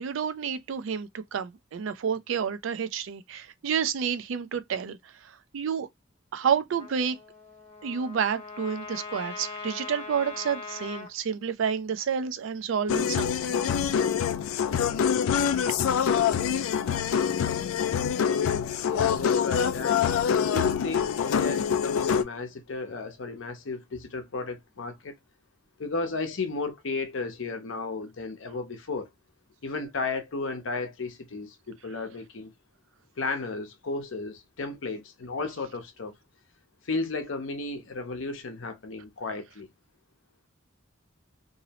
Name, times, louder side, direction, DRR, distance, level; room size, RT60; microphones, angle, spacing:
voice 1, 0.0-5.9 6.3-7.2 7.8-13.6 15.8-15.9, right 7 dB, 70° right, 0.4 m, -30 dB
Trumpet, 6.7-11.1, left 4 dB, 30° left, 0.7 m, -41 dB
Nakshibendi's Sufi Song Oyle bir bakisin var ki, 12.9-22.2, left 7 dB, 90° left, 0.3 m, -25 dB
voice 2, 18.8-20.1 20.4-25.1 25.8-29.1 29.6-32.5 33.2-36.1 36.8-39.7, left 3 dB, 70° left, 0.7 m, -33 dB
2.6 x 2.0 x 2.7 m
head